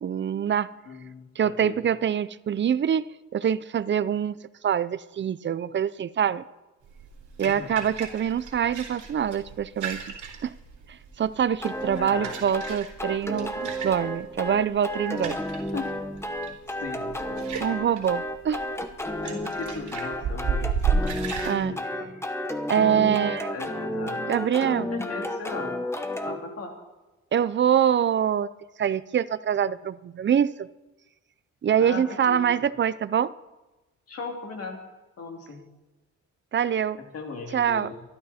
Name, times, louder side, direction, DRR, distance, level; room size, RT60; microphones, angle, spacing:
voice 1, 0.0-0.7 1.4-3.1 3.3-4.4 4.6-6.4 7.4-10.0 10.4-10.5 10.9-15.4 17.6-18.6 21.4-21.8 22.7-23.5 24.3-24.9 27.3-28.5 28.8-30.7 31.6-33.3 36.5-37.0 37.5-37.9, right 8 dB, 40° right, 16 dB, 0.5 m, -25 dB
voice 2, 0.9-1.8 7.4-7.8 12.0-12.3 15.7-16.0 16.8-17.6 19.2-22.1 23.5-24.4 24.9-25.8 26.2-26.7 31.8-32.4 34.1-34.8 35.2-35.7 37.0-37.9, left 4 dB, 55° left, 2 dB, 2.7 m, -38 dB
sound 1, 6.8-21.5, right 5 dB, 75° right, 3.7 m, -34 dB
sound 2, 11.6-26.4, left 1 dB, 10° left, 1.0 m, -32 dB
23.5 x 12.0 x 4.3 m, 1.1 s
wide cardioid pair, 160°, 29 cm